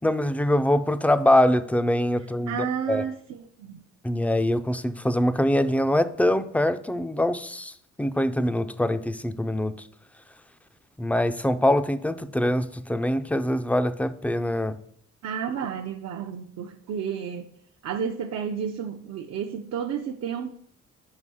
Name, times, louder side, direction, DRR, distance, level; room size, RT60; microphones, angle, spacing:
voice 1, 0.0-3.1 4.0-7.7 8.0-9.7 11.0-14.8, left 1 dB, 5° left, 0.4 m, -23 dB
voice 2, 2.5-3.8 15.2-17.5 17.8-20.6, right 7 dB, 65° right, 0.6 m, -31 dB
5.3 x 4.9 x 5.4 m
cardioid pair, 90°, 30 cm